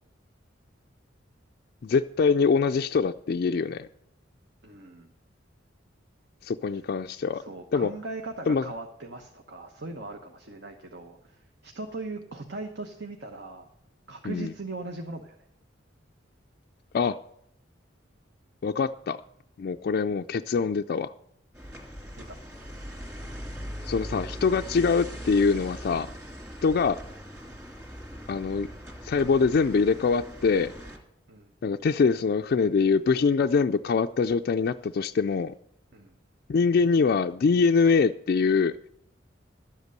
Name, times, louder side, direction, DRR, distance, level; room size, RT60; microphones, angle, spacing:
voice 1, 1.8-3.9 6.4-7.4 7.7-7.9 8.5-8.6 14.2-14.5 16.9-17.2 18.6-19.2 19.6-21.1 23.8-26.1 26.6-27.0 28.3-28.7 29.0-30.7 31.6-35.5 36.5-38.7, left 5 dB, 55° left, 5 dB, 0.3 m, -24 dB
voice 2, 4.6-5.1 7.3-13.7 14.1-15.3 22.1-22.5 31.3-31.5 35.9-36.1, right 3 dB, 60° right, 4 dB, 1.1 m, -39 dB
sound 1, 21.5-31.0, equal, 15° right, 2.4 m, -40 dB
12.0 x 8.1 x 6.6 m, 0.74 s
head